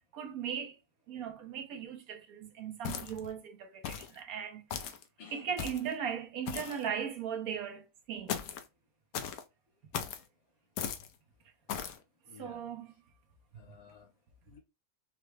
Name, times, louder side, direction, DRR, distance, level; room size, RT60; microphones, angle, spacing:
voice 1, 0.1-0.7 1.1-4.6 5.3-8.4 12.4-12.9, right 8 dB, 60° right, 1.1 m, -38 dB
sound 1, 2.8-3.3 3.8-4.2 4.7-5.0 5.6-5.9 6.5-6.8 8.3-8.7 9.1-9.4 9.9-10.2 10.8-11.1 11.7-12.0, left 8 dB, 70° left, 0.9 m, -37 dB
voice 2, 5.2-5.5 6.5-6.9 12.2-12.6 13.5-14.1 14.5-14.6, left 4 dB, 90° left, 2.1 m, -52 dB
5.8 x 2.1 x 3.2 m
omnidirectional pair, 2.0 m